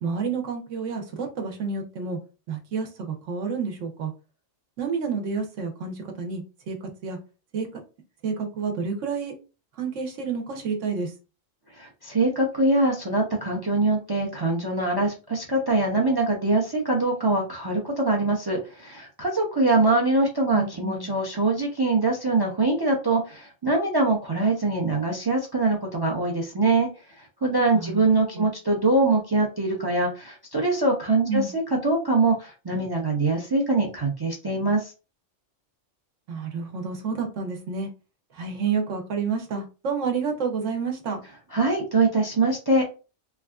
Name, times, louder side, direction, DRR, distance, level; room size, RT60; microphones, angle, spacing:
voice 1, 0.0-2.2 2.5-4.1 4.8-6.8 7.0-7.2 7.5-7.7 8.2-9.3 9.8-11.1 20.5-21.1 27.7-28.0 28.3-28.5 31.3-31.5 36.3-37.9 38.3-41.2, right 5 dB, 80° right, 1.1 m, -29 dB
voice 2, 11.8-26.9 27.2-34.9 41.5-42.8, right 2 dB, 35° right, 0.3 m, -23 dB
3.3 x 2.4 x 2.3 m
omnidirectional pair, 1.3 m